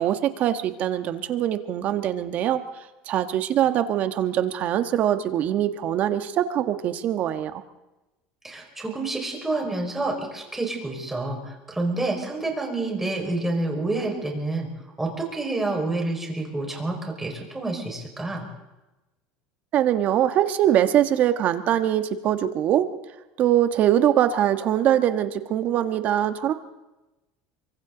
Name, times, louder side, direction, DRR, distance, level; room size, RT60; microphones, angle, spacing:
voice 1, 0.0-2.6 3.1-7.6 19.7-22.9 23.4-26.5, right 11 dB, 45° right, 8 dB, 1.5 m, -22 dB
voice 2, 8.4-14.7 15.0-18.5, right 2 dB, 10° right, 1 dB, 5.4 m, -28 dB
28.0 x 24.5 x 4.0 m, 1.0 s
supercardioid pair, 125°, 4 cm